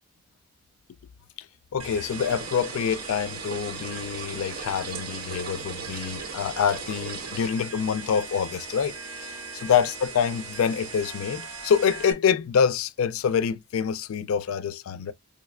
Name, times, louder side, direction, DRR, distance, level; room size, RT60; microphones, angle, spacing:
voice 1, 1.7-15.1, left 7 dB, 85° left, 0.4 m, -26 dB
sound 1, 1.8-12.1, right 4 dB, 85° right, 1.1 m, -39 dB
sound 2, 2.1-7.5, right 6 dB, 45° right, 0.4 m, -39 dB
4.7 x 2.1 x 2.3 m
head